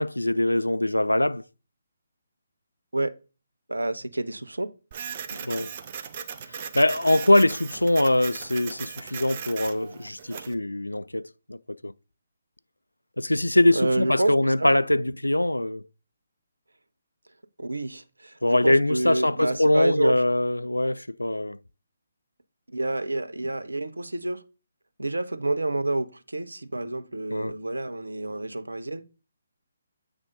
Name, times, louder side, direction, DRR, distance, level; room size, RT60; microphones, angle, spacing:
voice 1, 0.0-1.4 5.3-5.7 6.7-11.9 13.2-15.8 18.4-21.6 27.3-27.6, left 1 dB, 80° left, 0.3 m, -23 dB
voice 2, 3.7-4.7 13.7-14.7 17.6-20.2 22.7-24.4 25.0-29.0, right 2 dB, 75° right, 0.7 m, -28 dB
Printer, 4.9-10.5, right 7 dB, 35° right, 0.6 m, -38 dB
8.1 x 3.5 x 5.2 m
figure-of-eight pair, 140°, 0 cm